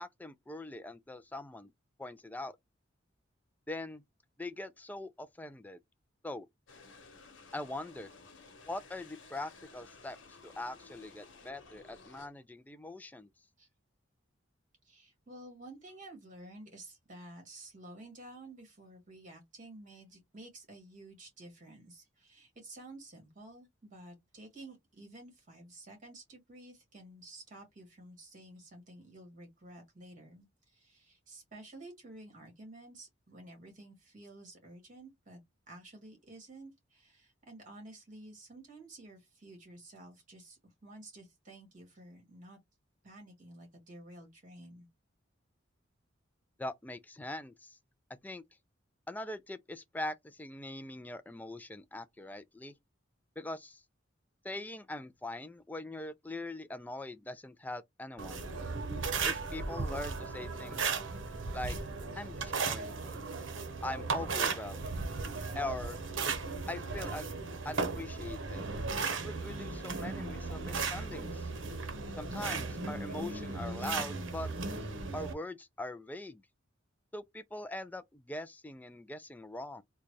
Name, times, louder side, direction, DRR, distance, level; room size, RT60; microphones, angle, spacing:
voice 1, 0.0-1.7 2.0-2.6 3.7-4.0 4.4-5.8 6.2-6.5 7.5-8.1 8.6-13.3 46.6-47.8 48.2-48.4 49.1-52.7 53.4-53.8 54.4-58.5 59.2-60.9 61.5-61.8 62.1-63.2 63.8-64.9 65.5-66.0 66.7-67.3 67.6-68.7 69.1-71.5 72.2-74.5 75.1-76.4 77.1-79.8, left 2 dB, 10° left, 0.3 m, -42 dB
sound 1, 6.7-12.3, left 3 dB, 80° left, 1.1 m, -55 dB
voice 2, 14.8-35.4 35.7-42.6 43.0-44.9, right 2 dB, 40° right, 2.0 m, -52 dB
sound 2, 58.2-75.3, right 4 dB, 75° right, 0.8 m, -36 dB
3.8 x 2.3 x 3.1 m
head